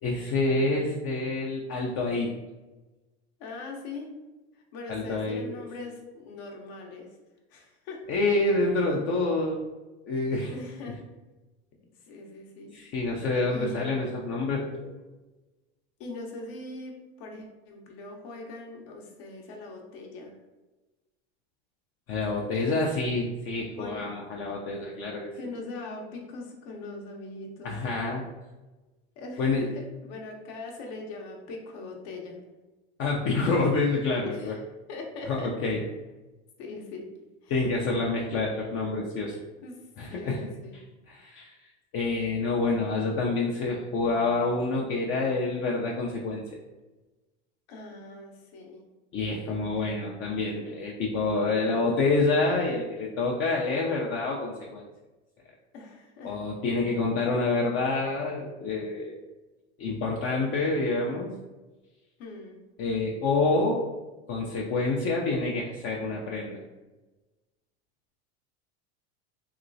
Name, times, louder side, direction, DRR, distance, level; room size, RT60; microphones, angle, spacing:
voice 1, 0.0-2.3 4.9-5.5 8.1-9.6 10.1-10.5 12.7-14.9 22.1-25.3 27.6-28.2 29.4-29.7 33.0-34.6 35.3-35.8 37.5-39.4 40.0-40.5 40.7-41.6 41.9-46.4 49.1-54.8 56.2-59.2 59.8-61.3 62.8-63.9 64.3-66.6, left 3 dB, 40° left, -2 dB, 0.5 m, -27 dB
voice 2, 3.4-4.1 4.7-7.1 7.5-8.0 10.5-11.0 12.1-12.7 13.5-14.1 16.0-20.3 22.6-22.8 23.8-24.1 25.4-27.8 29.2-32.4 34.3-34.6 34.9-35.7 36.6-37.1 37.4-37.7 39.6-39.8 40.1-40.8 47.7-48.8 49.8-49.9 50.6-50.8 55.7-56.4 62.2-62.6, left 2 dB, 65° left, 1 dB, 0.9 m, -41 dB
3.0 x 2.9 x 2.6 m, 1.1 s
supercardioid pair, 110°, 33 cm